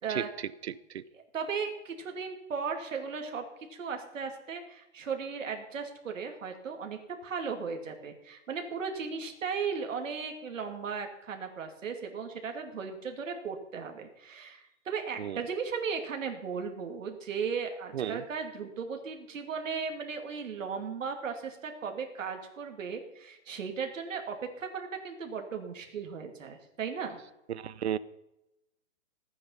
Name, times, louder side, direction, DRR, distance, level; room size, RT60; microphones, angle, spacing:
voice 1, 0.6-1.0 15.2-15.4 17.9-18.2 27.5-28.0, right 10 dB, 60° right, 18 dB, 0.7 m, -33 dB
voice 2, 1.3-3.4 3.7-27.2, right 5 dB, 80° right, 4 dB, 2.6 m, -36 dB
16.0 x 9.6 x 5.7 m, 0.90 s
hypercardioid pair, 180°, 38 cm